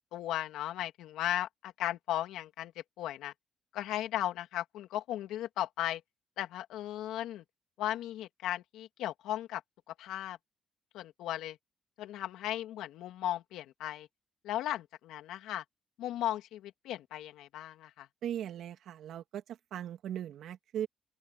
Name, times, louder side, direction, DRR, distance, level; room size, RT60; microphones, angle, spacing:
voice 1, 0.1-2.7 3.0-3.3 3.7-6.0 6.4-7.4 7.8-9.6 9.9-10.4 10.9-11.6 12.0-14.1 14.4-15.6 16.0-18.1, left 13 dB, 90° left, 2.7 m, -36 dB
voice 2, 18.2-20.9, right 10 dB, 75° right, 2.7 m, -39 dB
open air
cardioid pair, 90°, 0 cm